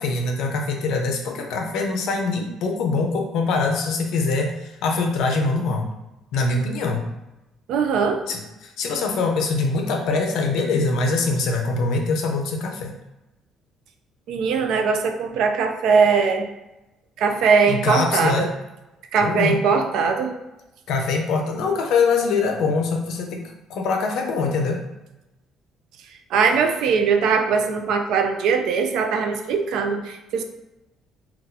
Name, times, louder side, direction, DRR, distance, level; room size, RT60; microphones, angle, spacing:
voice 1, 0.0-5.9 6.3-7.0 8.3-12.9 17.7-18.5 19.2-19.6 20.9-23.4 23.7-24.8, left 3 dB, 70° left, 3 dB, 0.5 m, -23 dB
voice 2, 7.7-8.2 14.3-16.5 17.2-18.5 19.1-20.3 26.3-30.4, right 5 dB, 70° right, 5 dB, 0.4 m, -20 dB
3.9 x 2.3 x 2.7 m, 0.97 s
cardioid pair, 150°, 0 cm